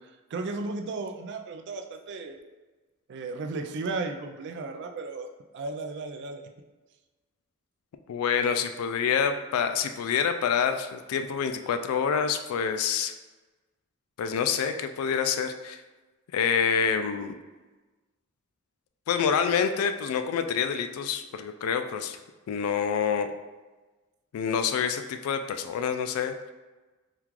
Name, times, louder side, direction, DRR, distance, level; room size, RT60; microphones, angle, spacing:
voice 1, 0.3-2.4 3.1-5.3 5.5-6.4, right 3 dB, 55° right, 5 dB, 0.3 m, -34 dB
voice 2, 8.1-13.1 14.2-15.8 16.3-17.4 19.1-22.2 22.5-23.3 24.3-26.5, left 7 dB, 85° left, 12 dB, 0.3 m, -27 dB
3.6 x 2.4 x 2.9 m, 1.2 s
head